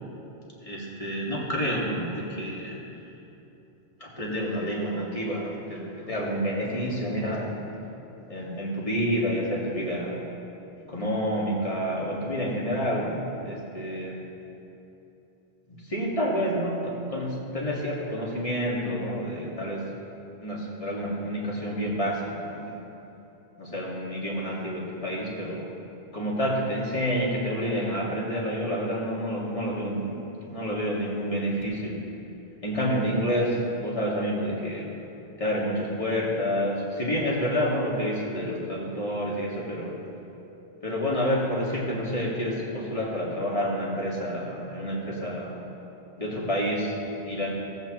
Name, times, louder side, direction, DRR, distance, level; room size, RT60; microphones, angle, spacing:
voice 1, 0.6-2.8 4.0-7.6 8.3-10.2 10.9-13.2 13.4-14.2 15.9-19.8 20.4-22.7 23.6-25.6 26.1-32.0 32.6-34.9 35.4-39.9 40.8-45.6 46.2-47.5, equal, 30° left, -5 dB, 2.0 m, -29 dB
17.5 x 8.0 x 3.0 m, 3.0 s
omnidirectional pair, 1.3 m